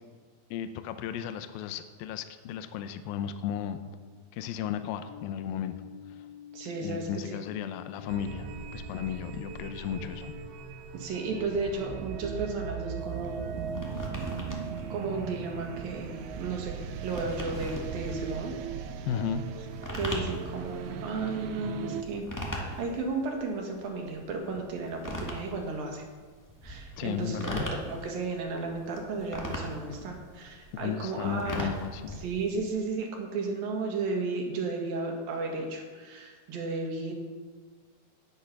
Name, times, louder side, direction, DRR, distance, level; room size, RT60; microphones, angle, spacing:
voice 1, 0.5-3.8 4.3-5.7 6.8-8.5 8.7-10.3 19.1-19.5 27.0-27.7 30.7-32.2, left 9 dB, 80° left, 10 dB, 2.5 m, -34 dB
sound 1, 5.1-10.5, left 10 dB, 55° left, 1.3 m, -48 dB
voice 2, 6.5-7.4 10.9-13.7 14.9-18.5 19.9-26.0 26.6-31.7 32.2-37.1, right 3 dB, 70° right, 2 dB, 3.4 m, -34 dB
sound 2, 8.1-22.0, right 6 dB, 90° right, 2.7 m, -39 dB
sound 3, 13.0-32.8, equal, 15° left, 0.6 m, -40 dB
12.5 x 10.0 x 6.0 m, 1.5 s
omnidirectional pair, 4.4 m